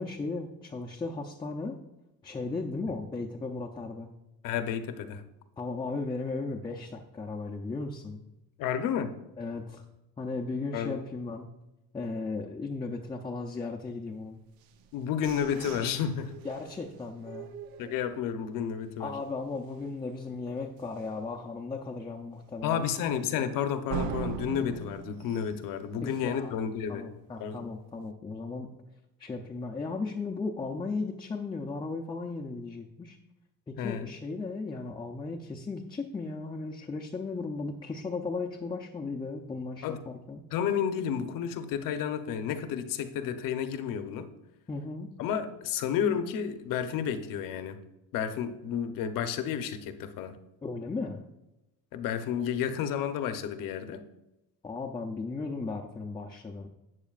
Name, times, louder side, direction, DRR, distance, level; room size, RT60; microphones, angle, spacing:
voice 1, 0.0-1.8 2.2-4.1 5.6-8.2 9.4-9.8 10.2-11.5 11.9-14.4 16.4-17.5 19.0-22.9 26.0-26.6 26.9-28.7 29.2-33.2 33.7-40.4 44.7-45.1 50.6-51.2 54.6-56.7, left 3 dB, 15° left, -1 dB, 0.5 m, -36 dB
voice 2, 4.4-5.2 8.6-9.1 10.7-11.0 14.9-16.3 17.8-19.1 22.6-27.0 27.4-27.7 33.8-34.1 39.8-40.0 40.5-44.2 45.2-47.8 48.1-50.4 51.9-54.0, left 8 dB, 65° left, 9 dB, 0.9 m, -31 dB
sound 1, 14.6-18.5 19.0-19.1 19.4-19.8 20.2-20.3 20.8-20.9 23.9-26.6, right 7 dB, 80° right, 0.8 m, -40 dB
12.0 x 8.3 x 2.4 m, 0.95 s
cardioid pair, 150°, 35 cm